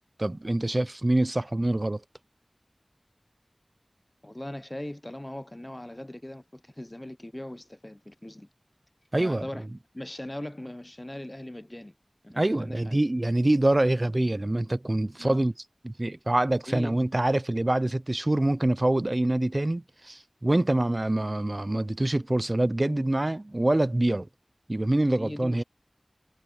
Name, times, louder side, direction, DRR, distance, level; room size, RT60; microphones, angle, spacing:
voice 1, 0.2-2.0 9.1-9.5 12.4-15.5 15.8-24.3 24.7-25.6, right 1 dB, 45° right, 0.6 m, -25 dB
voice 2, 4.2-8.5 9.2-11.9 12.2-13.0 15.2-15.4 16.7-17.0 25.2-25.6, left 1 dB, 30° left, 0.7 m, -40 dB
wide cardioid pair, 40°, 0 cm